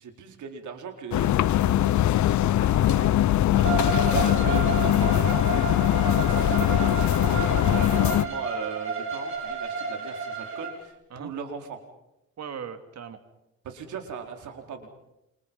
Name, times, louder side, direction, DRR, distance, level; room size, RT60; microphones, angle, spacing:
voice 1, 0.0-2.0 4.1-4.7 5.0-5.7 6.5-11.8 13.6-14.9, right 6 dB, 75° right, 4 dB, 4.5 m, -38 dB
sound 1, 1.1-8.2, left 12 dB, 70° left, 1.0 m, -22 dB
voice 2, 2.6-4.4 11.1-11.3 12.4-13.2, right 7 dB, 60° right, 8 dB, 2.9 m, -40 dB
Bowed string instrument, 3.5-10.7, right 4 dB, 45° right, 6.8 m, -31 dB
29.0 x 28.0 x 5.6 m, 0.89 s
cardioid pair, 90°, 30 cm